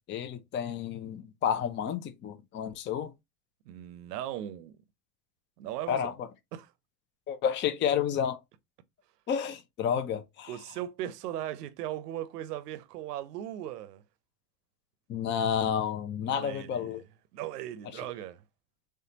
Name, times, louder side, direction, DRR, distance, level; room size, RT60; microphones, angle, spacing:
voice 1, 0.1-3.1 5.9-6.3 7.3-8.4 9.3-10.5 15.1-17.0, left 8 dB, 25° left, 0.6 m, -30 dB
voice 2, 3.6-4.8 5.6-6.1 6.5-6.7 10.5-14.0 16.2-17.0 17.3-18.4, right 12 dB, 75° right, 0.8 m, -38 dB
3.6 x 3.3 x 2.8 m
hypercardioid pair, 110°, 48 cm